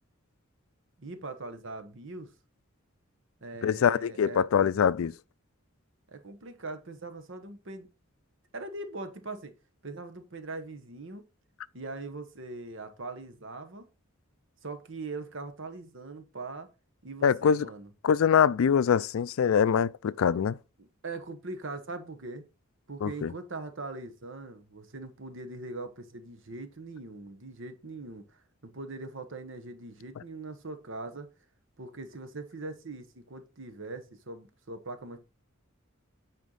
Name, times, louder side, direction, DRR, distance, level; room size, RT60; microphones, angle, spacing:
voice 1, 1.0-2.3 3.4-4.5 6.1-7.9 8.5-9.5 9.8-11.2 11.7-13.8 14.6-16.7 17.0-17.9 20.8-22.4 22.9-31.3 31.8-35.2, right 3 dB, 65° right, 1.2 m, -41 dB
voice 2, 3.6-5.1 17.2-17.7 18.0-20.6 23.0-23.3, left 7 dB, 75° left, 0.4 m, -24 dB
9.4 x 4.5 x 4.0 m
head